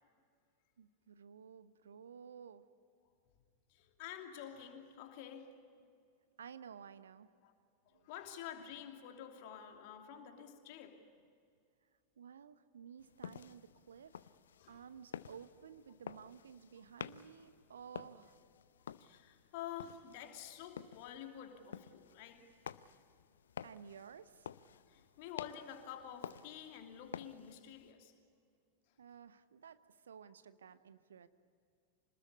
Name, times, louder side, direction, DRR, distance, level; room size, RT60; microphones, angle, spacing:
voice 1, 0.8-2.7 6.4-7.3 7.9-8.1 12.2-14.2 14.7-18.4 23.6-24.5 29.0-31.3, right 7 dB, 65° right, 1.0 m, -54 dB
voice 2, 3.7-5.6 7.4-7.5 8.0-11.0 14.6-14.8 19.0-22.5 24.7-28.1, left 9 dB, 45° left, 2.8 m, -49 dB
sound 1, 13.0-27.9, left 8 dB, 65° left, 0.7 m, -51 dB
26.5 x 20.0 x 8.5 m
figure-of-eight pair, 90°, 0 cm